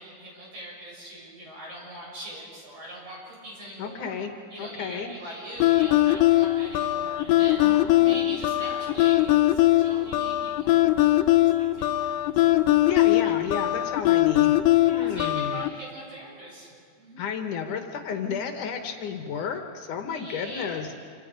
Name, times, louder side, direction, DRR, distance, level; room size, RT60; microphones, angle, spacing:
voice 1, 0.0-4.1 4.5-12.8 13.2-13.3 14.8-16.7 17.0-17.2 20.0-21.0, right 1 dB, 45° right, -4 dB, 8.1 m, -42 dB
voice 2, 3.8-4.3 4.6-5.1 7.6-8.5 12.9-14.6 14.9-15.6 17.2-20.9, left 6 dB, 70° left, 5 dB, 2.7 m, -32 dB
sound 1, 5.6-15.7, left 15 dB, 90° left, 2.4 m, -21 dB
27.0 x 26.0 x 5.1 m, 2.2 s
omnidirectional pair, 3.8 m